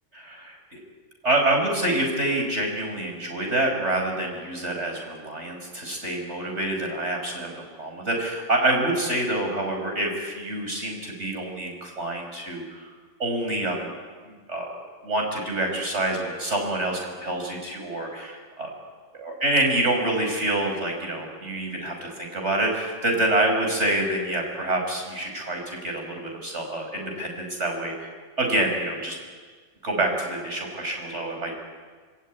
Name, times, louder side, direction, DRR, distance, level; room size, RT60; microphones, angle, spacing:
voice 1, 0.1-0.8 1.2-12.9 13.2-13.9 14.2-14.7 15.0-18.7 19.1-28.1 28.4-29.2 29.8-31.5, right 1 dB, 65° right, 2 dB, 6.1 m, -27 dB
26.5 x 20.5 x 9.6 m, 1.5 s
omnidirectional pair, 1.3 m